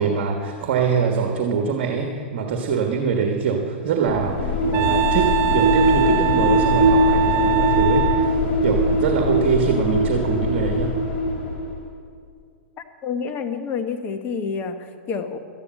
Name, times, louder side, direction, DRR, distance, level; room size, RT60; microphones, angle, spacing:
voice 1, 0.0-8.2 8.6-10.9, right 6 dB, 60° right, 3 dB, 1.5 m, -23 dB
sound 1, 4.0-11.8, left 1 dB, 55° left, 3.4 m, -21 dB
Wind instrument woodwind instrument, 4.7-8.4, right 15 dB, 40° right, 0.4 m, -23 dB
voice 2, 13.0-15.4, left 5 dB, 35° left, 7 dB, 1.2 m, -28 dB
13.0 x 9.7 x 7.5 m, 2.3 s
hypercardioid pair, 120°, 6 cm